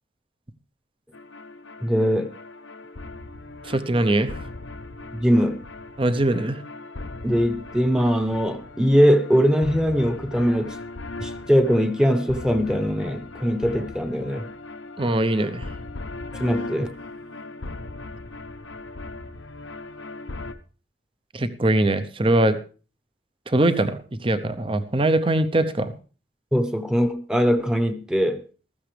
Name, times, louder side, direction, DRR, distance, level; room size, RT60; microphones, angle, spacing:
sound 1, 1.1-20.5, left 2 dB, 85° left, 0.9 m, -38 dB
voice 1, 1.8-2.3 5.1-5.6 7.2-10.8 11.2-14.5 16.4-16.9 26.5-28.4, equal, 5° right, 1.0 m, -21 dB
voice 2, 3.6-4.3 6.0-6.6 15.0-15.6 21.3-22.6 23.5-25.9, right 1 dB, 25° right, 0.7 m, -22 dB
15.0 x 13.5 x 3.3 m
head